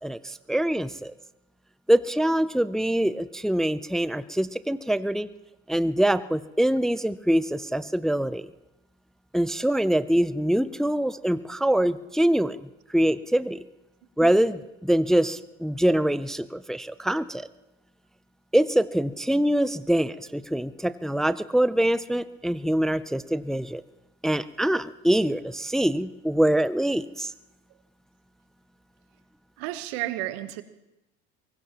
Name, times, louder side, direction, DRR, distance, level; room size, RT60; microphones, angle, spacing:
voice 1, 0.0-1.1 1.9-5.3 5.7-8.5 9.3-12.6 12.9-13.6 14.2-17.5 18.5-23.8 24.2-27.3, right 1 dB, ahead, 14 dB, 0.5 m, -24 dB
voice 2, 29.6-30.6, right 15 dB, 80° right, 12 dB, 1.2 m, -31 dB
23.0 x 20.5 x 3.0 m, 0.93 s
supercardioid pair, 80°, 31 cm